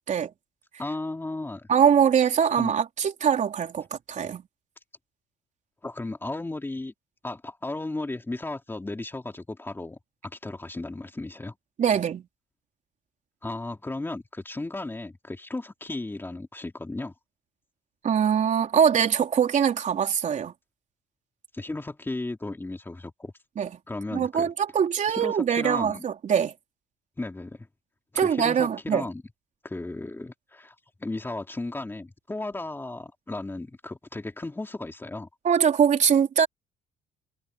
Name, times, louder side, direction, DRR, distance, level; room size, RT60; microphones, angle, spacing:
voice 1, 0.8-1.7 2.5-2.7 5.8-6.9 7.2-11.5 13.4-17.1 21.5-23.3 23.9-24.5 25.1-26.0 27.2-27.7 28.1-29.2 29.6-35.3, left 2 dB, 15° left, 3.2 m, -35 dB
voice 2, 1.7-4.4 11.8-12.2 18.0-20.5 23.6-23.7 24.1-26.5 28.1-29.1 35.4-36.5, right 8 dB, 45° right, 3.9 m, -23 dB
cardioid pair, 110°, 17 cm